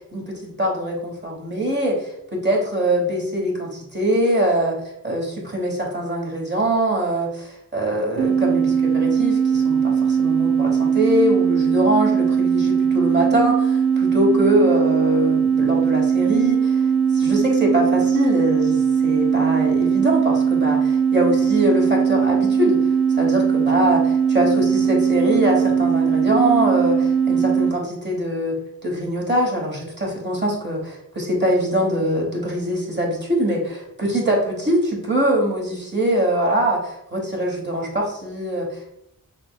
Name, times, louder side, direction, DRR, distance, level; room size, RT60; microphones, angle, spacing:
voice 1, 0.0-16.9 17.1-38.9, right 1 dB, 30° right, -1 dB, 1.2 m, -23 dB
sound 1, 8.2-27.8, right 7 dB, 90° right, 0.7 m, -19 dB
5.7 x 2.9 x 2.3 m, 0.76 s
wide cardioid pair, 70°, 35 cm